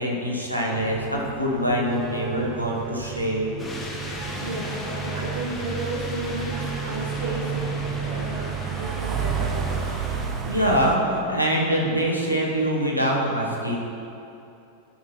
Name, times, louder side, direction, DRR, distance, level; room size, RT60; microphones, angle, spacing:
voice 1, 0.0-3.5 10.4-13.8, equal, 90° left, -3 dB, 1.2 m, -24 dB
sound 1, 0.7-11.0, right 6 dB, 25° right, 0.7 m, -31 dB
sound 2, 3.6-10.3, left 2 dB, 20° left, 1.1 m, -36 dB
voice 2, 4.4-7.8 8.0-9.8, right 2 dB, 70° right, -3 dB, 1.6 m, -33 dB
11.5 x 5.9 x 3.0 m, 2.8 s
figure-of-eight pair, 90°, 0 cm